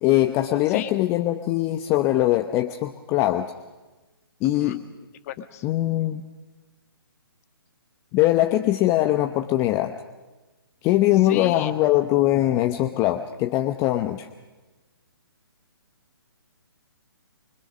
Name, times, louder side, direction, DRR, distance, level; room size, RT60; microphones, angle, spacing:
voice 1, 0.0-3.5 4.4-4.8 5.6-6.2 8.1-9.9 10.8-14.3, left 15 dB, 20° left, 7 dB, 0.9 m, -21 dB
voice 2, 4.4-4.8 5.2-5.6 11.2-11.7, left 11 dB, 40° left, 9 dB, 1.7 m, -34 dB
25.0 x 24.0 x 6.3 m, 1.2 s
figure-of-eight pair, 140°, 13 cm